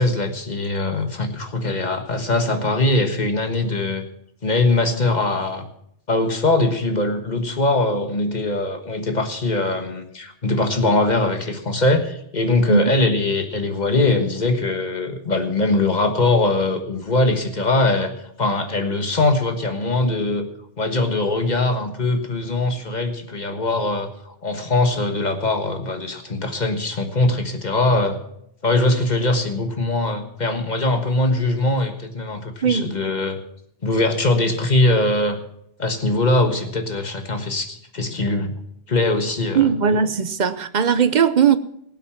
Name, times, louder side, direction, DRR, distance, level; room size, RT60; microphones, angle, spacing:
voice 1, 0.0-4.1 4.4-5.7 6.1-18.1 18.4-20.5 20.8-28.2 28.6-33.4 33.8-35.4 35.8-38.5 38.9-39.7, left 2 dB, 45° left, 6 dB, 1.6 m, -21 dB
voice 2, 39.5-41.6, right 7 dB, 50° right, 13 dB, 0.9 m, -18 dB
18.0 x 8.0 x 5.8 m, 0.73 s
omnidirectional pair, 1.0 m